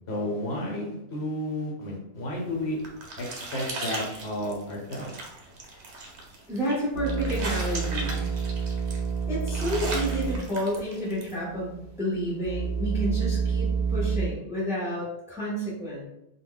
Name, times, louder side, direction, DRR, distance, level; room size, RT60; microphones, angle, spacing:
voice 1, 0.1-2.8 3.2-3.3 3.5-5.1, left 1 dB, 65° left, -2 dB, 1.0 m, -32 dB
sound 1, 2.4-11.3, right 2 dB, 80° right, 0.9 m, -38 dB
voice 2, 6.5-8.2 9.3-16.1, equal, 5° right, -6 dB, 0.7 m, -30 dB
sound 2, 6.9-10.5 10.8-10.9 11.5-14.3, right 6 dB, 60° right, 0.5 m, -29 dB
2.2 x 2.1 x 3.7 m, 0.85 s
omnidirectional pair, 1.2 m